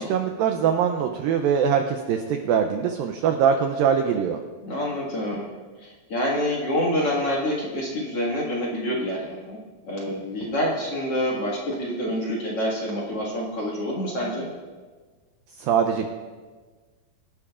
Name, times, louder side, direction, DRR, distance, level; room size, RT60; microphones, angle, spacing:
voice 1, 0.0-4.4 15.6-16.1, right 7 dB, 90° right, 5 dB, 2.0 m, -22 dB
voice 2, 4.6-5.5 5.8-9.6 9.8-14.5, equal, 45° left, -4 dB, 2.1 m, -27 dB
23.5 x 11.5 x 2.5 m, 1.4 s
omnidirectional pair, 4.9 m